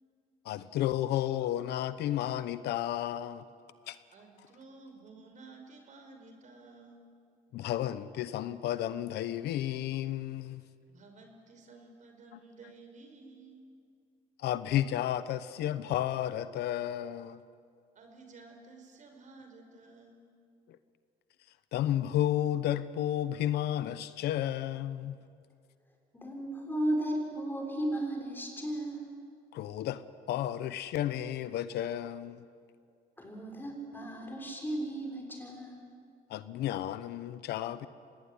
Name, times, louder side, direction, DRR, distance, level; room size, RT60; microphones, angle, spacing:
voice 1, 0.4-3.4 3.9-4.0 7.5-10.6 12.3-12.4 14.4-17.4 20.7-20.8 21.7-25.2 29.5-32.4 36.3-37.9, left 12 dB, 75° left, 13 dB, 1.0 m, -32 dB
voice 2, 4.1-7.1 10.9-13.7 18.0-20.3, right 3 dB, 45° right, 4 dB, 5.2 m, -53 dB
voice 3, 26.1-29.1 33.2-35.9, right 1 dB, 10° left, 0 dB, 6.3 m, -35 dB
25.5 x 18.5 x 10.0 m, 2.3 s
cardioid pair, 110°, 17 cm